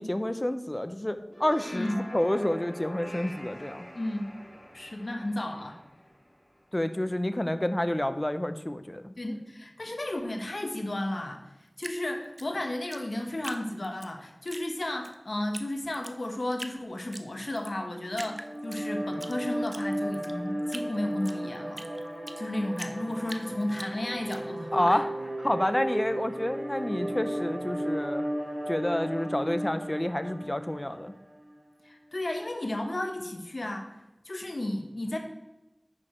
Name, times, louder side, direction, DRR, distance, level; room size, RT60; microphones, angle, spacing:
voice 1, 0.0-3.9 6.7-9.1 24.7-25.1 25.4-28.2 28.7-31.1, left 1 dB, 25° left, 10 dB, 0.7 m, -29 dB
sound 1, 1.2-6.7, equal, 5° left, 3.2 m, -45 dB
voice 2, 1.7-2.0 3.9-4.3 4.7-5.8 9.2-21.8 22.4-25.0 31.8-34.0 34.2-35.2, left 1 dB, 75° left, 4 dB, 1.1 m, -33 dB
Drip, 11.8-14.1 14.5-15.1 15.5-15.7 15.9-16.8 17.1-17.7 18.1-19.3 19.7-22.4 22.8-24.4, right 1 dB, 50° right, 0.7 m, -42 dB
sound 2, 18.1-31.5, equal, 80° right, 1.9 m, -35 dB
9.8 x 6.5 x 4.4 m, 1.0 s
wide cardioid pair, 45°, 0 cm